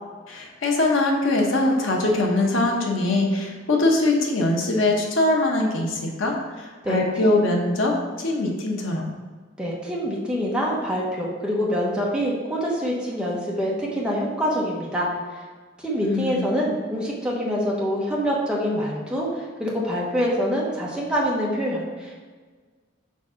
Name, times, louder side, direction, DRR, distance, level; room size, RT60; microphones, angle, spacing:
voice 1, 0.3-9.1 16.0-16.5, left 2 dB, 85° left, 0 dB, 1.0 m, -22 dB
voice 2, 9.6-15.1 15.8-22.2, equal, 5° right, -4 dB, 1.0 m, -25 dB
5.3 x 4.1 x 5.0 m, 1.4 s
head